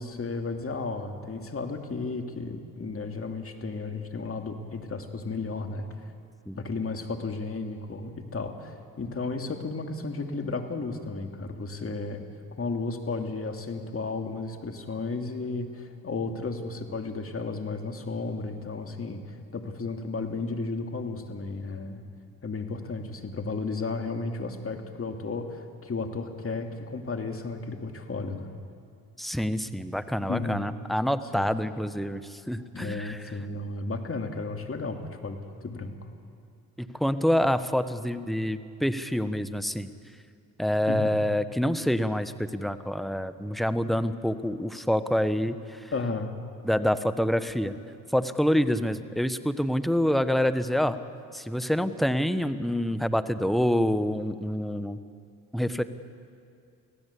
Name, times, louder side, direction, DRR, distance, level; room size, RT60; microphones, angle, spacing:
voice 1, 0.0-5.9 6.6-12.2 12.6-22.0 22.4-28.5 30.3-30.6 31.3-31.5 32.7-36.0 40.9-41.2 45.9-46.3, left 3 dB, 35° left, 5 dB, 2.6 m, -33 dB
voice 2, 29.2-33.2 36.8-39.9 40.6-45.9 46.6-47.7 48.1-51.0 51.3-55.0 55.5-55.8, equal, ahead, 11 dB, 1.2 m, -27 dB
26.0 x 16.0 x 8.5 m, 2.4 s
supercardioid pair, 60°, 39 cm